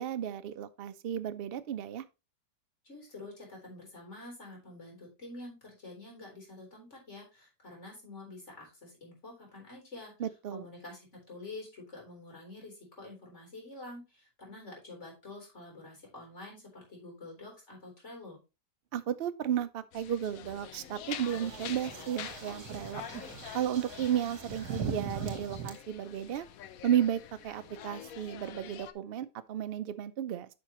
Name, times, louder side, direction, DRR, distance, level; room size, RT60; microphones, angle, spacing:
voice 1, 0.0-2.0 10.2-10.6 18.9-23.0 23.5-26.4 26.8-30.5, right 10 dB, 85° right, 0.5 m, -33 dB
voice 2, 2.8-10.1 10.5-18.4, left 2 dB, 40° left, 4.1 m, -47 dB
sound 1, 19.9-28.9, left 10 dB, 65° left, 1.0 m, -46 dB
sound 2, 21.1-25.7, right 5 dB, 65° right, 1.7 m, -40 dB
9.7 x 5.7 x 3.0 m
omnidirectional pair, 1.8 m